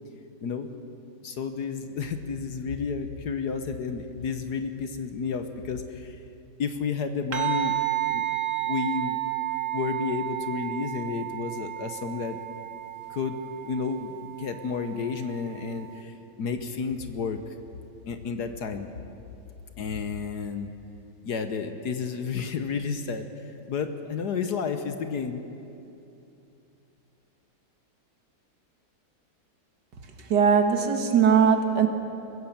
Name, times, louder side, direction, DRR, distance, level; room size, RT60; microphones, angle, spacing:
voice 1, 1.2-6.2 6.6-8.4 8.6-9.2 9.7-12.4 13.1-13.4 13.6-17.5 18.1-18.9 19.8-20.7 21.2-25.4, left 5 dB, 60° left, 8 dB, 1.4 m, -31 dB
sound 1, 7.3-16.0, right 16 dB, 45° right, 1.7 m, -32 dB
voice 2, 30.3-31.9, right 7 dB, 60° right, 5 dB, 1.9 m, -20 dB
23.0 x 16.0 x 7.2 m, 2.8 s
omnidirectional pair, 2.1 m